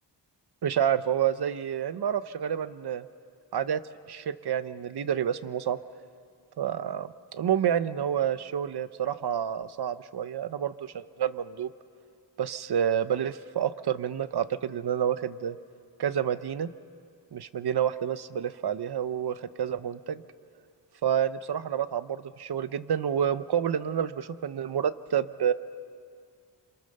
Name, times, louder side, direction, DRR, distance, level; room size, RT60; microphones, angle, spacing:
voice 1, 0.6-3.1 3.5-3.8 4.1-5.8 6.6-11.7 12.4-15.6 16.0-16.7 17.3-20.2 21.0-25.5, right 9 dB, 60° right, 14 dB, 0.8 m, -29 dB
27.5 x 26.5 x 6.7 m, 2.2 s
wide cardioid pair, 145°, 45 cm